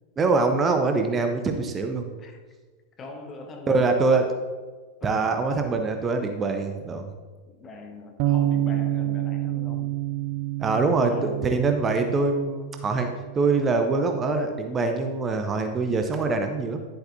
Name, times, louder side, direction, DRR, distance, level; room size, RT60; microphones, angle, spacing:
voice 1, 0.2-2.1 3.7-4.3 5.0-7.1 10.6-16.8, right 3 dB, 20° right, 5 dB, 0.7 m, -24 dB
voice 2, 3.0-4.2 5.0-5.3 6.4-6.5 7.5-9.9 10.8-11.5, left 3 dB, 25° left, 3 dB, 1.0 m, -42 dB
sound 1, 8.2-14.4, right 13 dB, 45° right, 0.3 m, -29 dB
10.5 x 7.8 x 2.7 m, 1.4 s
figure-of-eight pair, 90°, 0 cm